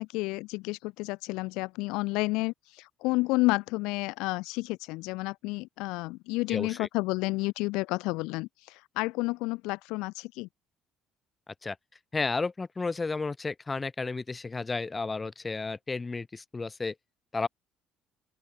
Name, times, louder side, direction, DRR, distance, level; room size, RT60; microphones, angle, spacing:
voice 1, 0.0-10.5, left 23 dB, 80° left, 1.2 m, -31 dB
voice 2, 6.5-6.9 11.6-11.7 12.1-16.9 17.3-17.5, left 3 dB, 25° left, 5.2 m, -32 dB
open air
supercardioid pair, 65°, 0 cm